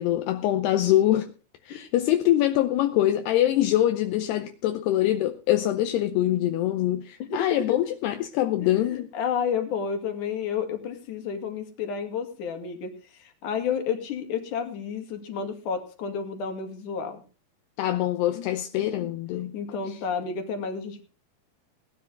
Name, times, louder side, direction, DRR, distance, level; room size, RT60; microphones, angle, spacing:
voice 1, 0.0-1.3 1.6-9.1 17.8-19.5 19.9-20.0, left 13 dB, 80° left, 2.8 m, -24 dB
voice 2, 8.6-17.2 18.3-18.5 18.9-19.1 19.5-21.0, left 6 dB, 55° left, 3.3 m, -31 dB
18.0 x 12.5 x 3.8 m
omnidirectional pair, 4.9 m